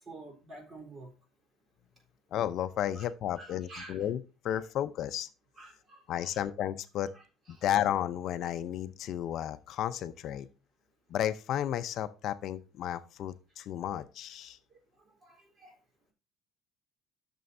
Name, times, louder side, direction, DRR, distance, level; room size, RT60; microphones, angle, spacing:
voice 1, 0.0-1.1 3.0-3.1 3.4-4.1 5.6-6.4 7.1-7.6 14.7-14.8 15.2-15.8, right 2 dB, 30° right, 3.8 m, -49 dB
voice 2, 2.3-4.2 4.4-5.3 6.1-7.1 7.5-10.5 11.1-14.6, left 11 dB, 60° left, 0.6 m, -33 dB
13.0 x 6.9 x 2.7 m
cardioid pair, 140°, 0 cm